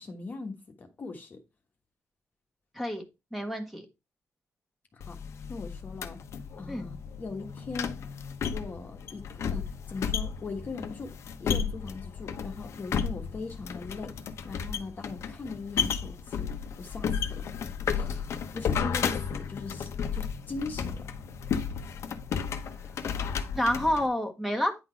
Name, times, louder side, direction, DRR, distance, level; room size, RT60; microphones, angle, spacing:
voice 1, 0.0-1.4 4.9-5.2 5.5-6.2 6.6-8.0 8.5-11.1 11.4-14.2 14.4-17.5 17.9-21.0, left 3 dB, 35° left, 1.3 m, -40 dB
voice 2, 3.3-3.8 6.7-6.9 23.5-24.7, equal, 5° right, 1.6 m, -28 dB
sound 1, 5.0-24.1, left 7 dB, 60° left, 1.0 m, -33 dB
9.8 x 4.0 x 4.6 m
cardioid pair, 140°, 5 cm